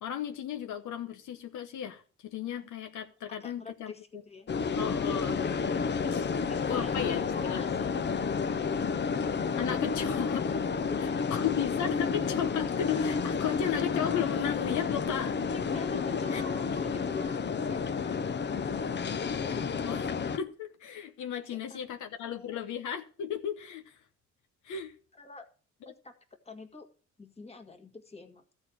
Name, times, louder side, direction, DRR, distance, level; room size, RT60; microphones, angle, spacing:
voice 1, 0.0-4.2 4.8-6.3 6.7-7.8 9.6-10.6 11.0-15.4 16.1-16.4 19.8-20.0 20.4-23.9 24.6-24.9, left 9 dB, 75° left, 1.1 m, -35 dB
voice 2, 3.3-4.5 6.5-7.9 8.4-8.5 15.7-17.4 17.7-19.0 19.4-19.6 21.4-21.8 22.2-22.6 25.2-25.5 25.9-26.1 26.5-26.9 27.2-28.4, left 4 dB, 20° left, 1.8 m, -45 dB
sound 1, 4.5-20.4, left 5 dB, 35° left, 0.8 m, -30 dB
13.5 x 4.5 x 8.7 m
cardioid pair, 90°, 30 cm